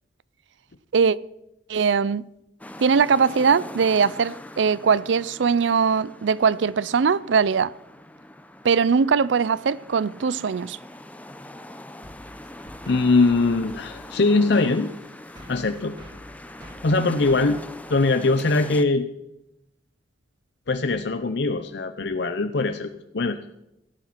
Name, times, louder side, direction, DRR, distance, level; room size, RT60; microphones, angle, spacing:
voice 1, 1.7-2.3 2.8-7.7 8.6-10.8, right 5 dB, 85° right, 0.5 m, -21 dB
sound 1, 2.6-18.8, left 1 dB, 10° left, 0.7 m, -42 dB
sound 2, 12.0-18.7, equal, 25° right, 2.0 m, -47 dB
voice 2, 12.9-14.9 15.5-16.0 16.8-17.6 17.9-19.1 20.7-23.4, left 3 dB, 65° left, 0.7 m, -21 dB
17.5 x 8.8 x 5.9 m
head